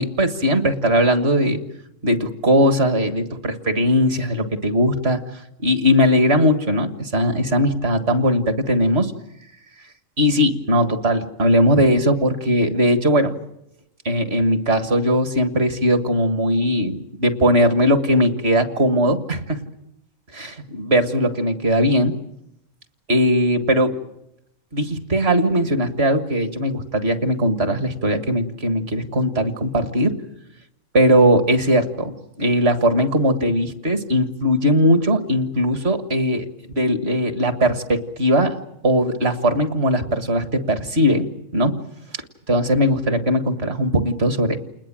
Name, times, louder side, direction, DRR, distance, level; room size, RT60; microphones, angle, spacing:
voice 1, 0.0-1.6 2.0-5.2 5.6-9.1 10.2-13.3 14.1-19.6 20.3-22.1 23.1-23.9 24.7-30.2 30.9-36.5 36.8-38.6 38.8-41.7 42.5-44.6, equal, 50° right, 8 dB, 1.9 m, -19 dB
29.0 x 20.5 x 7.5 m, 0.81 s
omnidirectional pair, 1.4 m